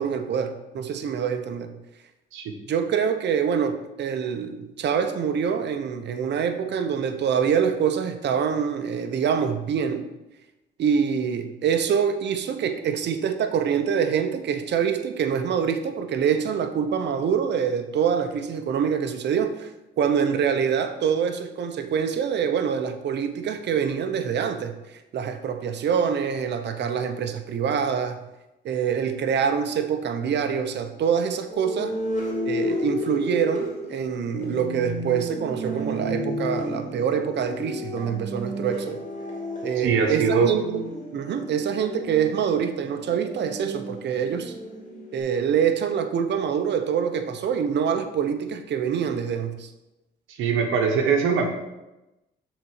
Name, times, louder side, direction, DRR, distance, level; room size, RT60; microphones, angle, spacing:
voice 1, 0.0-1.7 2.7-10.1 10.8-19.7 20.0-24.8 25.1-28.2 28.6-32.0 32.4-39.0 39.6-40.8 41.1-44.5 45.1-49.7, right 7 dB, 60° right, 8 dB, 0.8 m, -25 dB
sound 1, 31.5-45.2, left 1 dB, 35° left, 2.6 m, -32 dB
voice 2, 39.8-40.5 50.4-51.5, right 6 dB, 85° right, 2 dB, 1.0 m, -21 dB
6.2 x 4.1 x 6.4 m, 0.97 s
cardioid pair, 90°, 20 cm